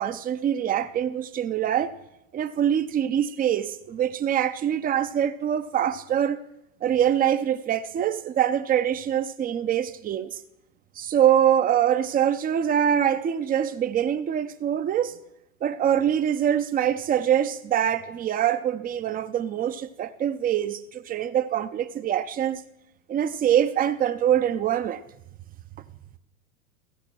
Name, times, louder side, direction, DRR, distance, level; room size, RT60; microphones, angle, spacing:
voice 1, 0.0-1.9 2.3-6.4 6.8-10.4 11.0-15.2 15.6-22.6 23.1-25.0, right 10 dB, 20° right, 0.6 m, -24 dB
15.5 x 6.0 x 6.0 m
hypercardioid pair, 105°, 40 cm